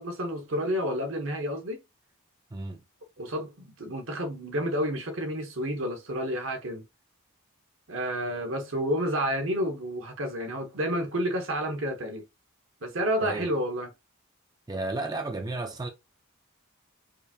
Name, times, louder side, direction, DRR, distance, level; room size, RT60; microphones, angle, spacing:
voice 1, 0.0-1.8 3.2-6.8 7.9-12.2 12.8-13.9, equal, 65° right, 1.0 m, -30 dB
voice 2, 2.5-2.8 13.2-13.5 14.7-15.9, right 2 dB, 20° right, 0.4 m, -33 dB
4.8 x 2.6 x 2.7 m
head